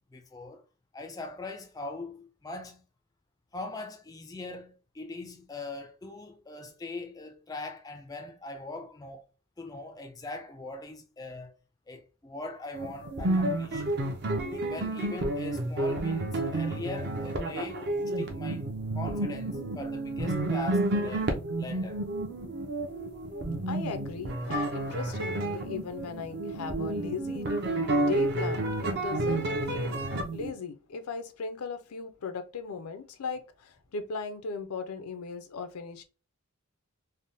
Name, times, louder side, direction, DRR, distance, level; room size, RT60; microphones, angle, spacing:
voice 1, 0.1-0.6 0.9-2.8 3.5-9.2 9.6-11.5 11.9-14.0 14.5-18.7 18.9-21.3 21.6-22.0, left 2 dB, 15° left, 0.3 m, -41 dB
sound 1, 12.7-30.5, right 2 dB, 50° right, 0.6 m, -30 dB
voice 2, 23.7-30.0 30.3-36.0, left 5 dB, 90° left, 0.5 m, -38 dB
3.4 x 2.1 x 2.6 m
head